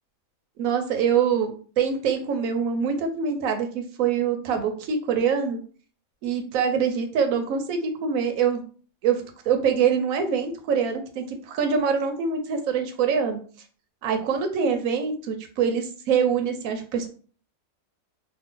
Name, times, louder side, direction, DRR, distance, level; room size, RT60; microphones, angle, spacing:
voice 1, 0.6-5.6 6.2-8.6 9.0-13.4 14.0-17.1, right 6 dB, 75° right, 6 dB, 1.0 m, -24 dB
2.6 x 2.4 x 3.6 m, 0.42 s
omnidirectional pair, 1.5 m